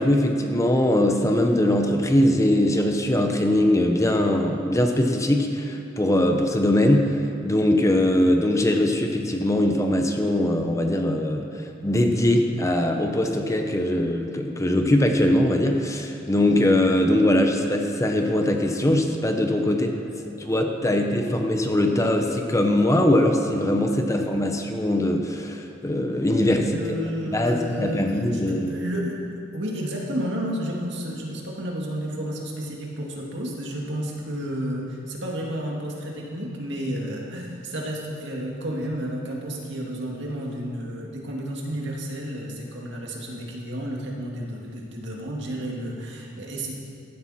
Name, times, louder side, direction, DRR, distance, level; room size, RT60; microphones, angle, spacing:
voice 1, 0.0-7.2 7.4-19.9 20.4-26.8 27.3-28.7, left 1 dB, 15° left, 4 dB, 0.8 m, -21 dB
voice 2, 19.7-21.4 26.7-29.2 29.5-46.7, equal, 65° right, -2 dB, 2.2 m, -32 dB
15.0 x 12.0 x 4.3 m, 2.4 s
head